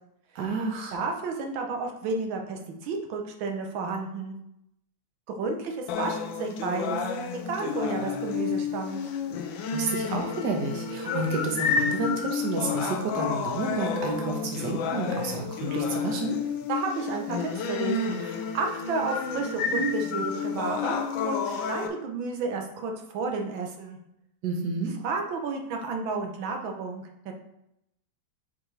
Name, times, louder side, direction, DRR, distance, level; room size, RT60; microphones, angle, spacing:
voice 1, 0.3-1.0 9.7-16.4 24.4-24.9, right 3 dB, 65° right, 2 dB, 1.5 m, -30 dB
voice 2, 0.9-4.3 5.4-7.0 7.5-9.0 16.7-21.0 21.2-24.0 25.0-27.3, right 4 dB, 85° right, 3 dB, 1.6 m, -31 dB
sound 1, 5.9-21.9, left 5 dB, 85° left, 1.4 m, -30 dB
6.2 x 4.7 x 3.2 m, 0.80 s
omnidirectional pair, 2.1 m